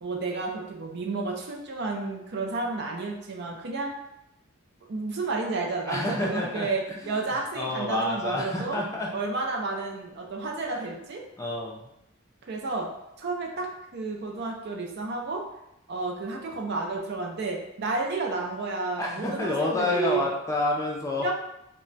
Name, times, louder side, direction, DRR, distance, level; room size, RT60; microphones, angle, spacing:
voice 1, 0.0-3.9 4.9-8.8 9.1-11.2 12.5-12.9 13.2-15.4 15.9-20.2 21.2-21.3, right 3 dB, 55° right, 0 dB, 0.5 m, -31 dB
voice 2, 5.9-7.2 7.5-9.1 10.7-10.9 11.4-11.9 19.0-21.3, left 2 dB, 15° left, -2 dB, 0.4 m, -29 dB
2.2 x 2.1 x 3.8 m, 0.83 s
head